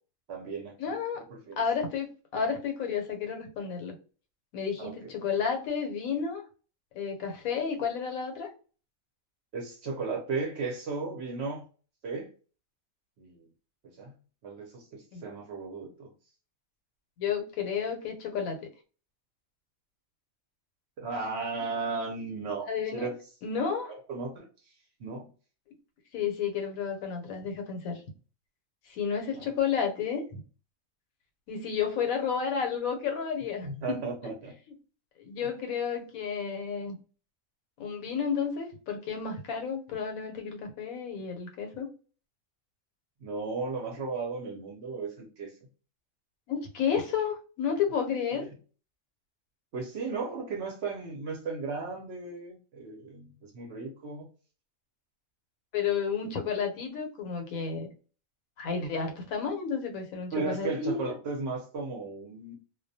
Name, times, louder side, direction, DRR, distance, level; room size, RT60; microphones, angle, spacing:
voice 1, 0.3-0.9 1.3-1.6 4.8-5.1 9.5-11.6 12.0-12.3 13.2-13.5 14.0-14.1 14.4-16.1 21.0-23.2 23.7-24.5 25.0-25.3 29.4-29.5 33.6-34.5 43.2-45.5 48.3-48.5 49.7-54.3 60.3-62.5, right 4 dB, 60° right, 1 dB, 0.8 m, -35 dB
voice 2, 0.8-1.2 1.6-2.1 2.3-3.9 4.5-6.4 6.9-8.5 15.1-15.2 17.2-18.6 22.7-23.1 23.4-23.9 26.1-28.0 28.9-30.4 31.5-34.0 35.2-37.0 37.8-41.9 46.5-48.5 55.7-57.9 58.6-61.0, left 6 dB, 85° left, 4 dB, 1.1 m, -31 dB
2.3 x 2.1 x 2.6 m, 0.37 s
omnidirectional pair, 1.4 m